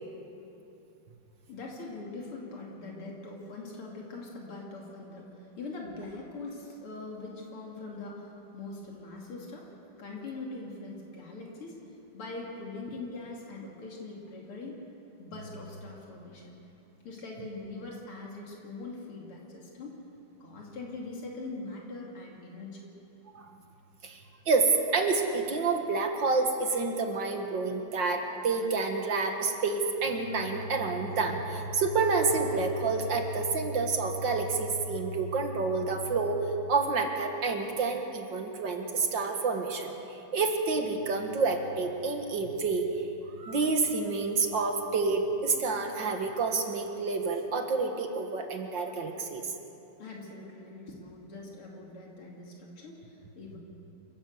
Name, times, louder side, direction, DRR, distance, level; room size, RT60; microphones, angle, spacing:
voice 1, 1.5-9.7 10.0-11.8 12.1-14.8 15.2-16.5 17.0-20.0 20.4-22.9 50.0-53.6, left 3 dB, 80° left, -2 dB, 3.4 m, -42 dB
voice 2, 24.0-42.9 43.3-49.5, right 4 dB, 60° right, 4 dB, 2.3 m, -29 dB
27.5 x 12.5 x 7.9 m, 2.9 s
omnidirectional pair, 2.4 m